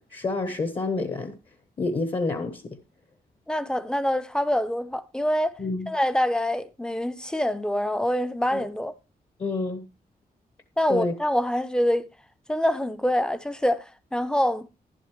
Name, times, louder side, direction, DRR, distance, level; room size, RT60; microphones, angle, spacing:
voice 1, 0.0-1.4 1.8-2.8 5.6-5.9 8.5-8.7 9.4-9.8 10.9-11.1, left 3 dB, 35° left, 1.0 m, -28 dB
voice 2, 3.5-5.5 5.9-8.9 10.8-12.1 12.5-13.8 14.1-14.7, equal, 5° left, 0.6 m, -25 dB
11.5 x 11.0 x 3.1 m
wide cardioid pair, 180°, 16 cm